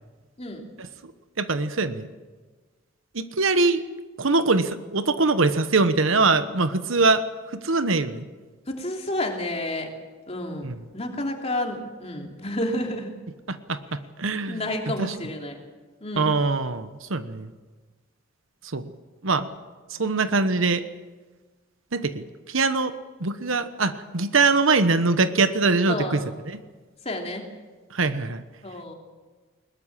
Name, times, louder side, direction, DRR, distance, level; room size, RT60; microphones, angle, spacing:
voice 1, 1.4-2.1 3.1-3.8 4.2-7.2 7.5-8.2 10.6-10.8 13.5-14.6 15.0-15.1 16.2-17.5 18.7-18.9 19.2-19.5 19.9-20.8 21.9-22.9 23.2-26.6 27.9-28.4, right 3 dB, 70° right, 11 dB, 1.2 m, -23 dB
voice 2, 8.7-9.9 10.3-10.7 10.9-13.1 14.5-15.6 16.0-16.3 25.9-26.2 27.0-27.4 28.6-29.0, left 1 dB, 30° left, 2 dB, 3.0 m, -30 dB
21.0 x 20.5 x 7.5 m, 1.3 s
head